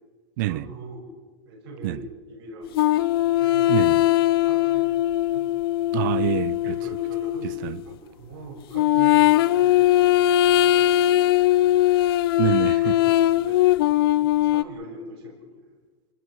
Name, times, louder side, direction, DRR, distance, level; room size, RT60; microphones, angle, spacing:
voice 1, 0.5-1.1 1.5-5.4 6.6-11.7 12.8-13.7 14.4-15.7, equal, 80° right, 7.2 m, -41 dB
sound 1, 2.7-7.8 8.7-14.6, left 14 dB, 65° left, 0.7 m, -20 dB
voice 2, 5.9-6.6 7.6-7.8 12.4-12.9, right 16 dB, 50° right, 0.7 m, -25 dB
26.5 x 20.0 x 6.4 m
supercardioid pair, 170°, 13 cm